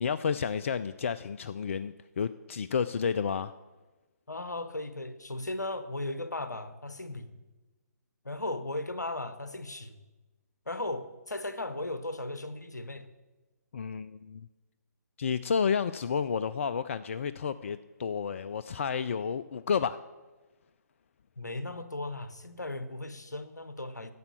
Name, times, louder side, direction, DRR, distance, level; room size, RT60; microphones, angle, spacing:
voice 1, 0.0-3.5 13.7-14.5 15.2-20.0, left 6 dB, 50° left, 13 dB, 0.3 m, -31 dB
voice 2, 4.3-7.3 8.2-10.0 10.7-13.1 21.4-24.1, left 2 dB, 80° left, 12 dB, 0.9 m, -36 dB
11.0 x 6.9 x 6.7 m, 1.2 s
figure-of-eight pair, 135°, 9 cm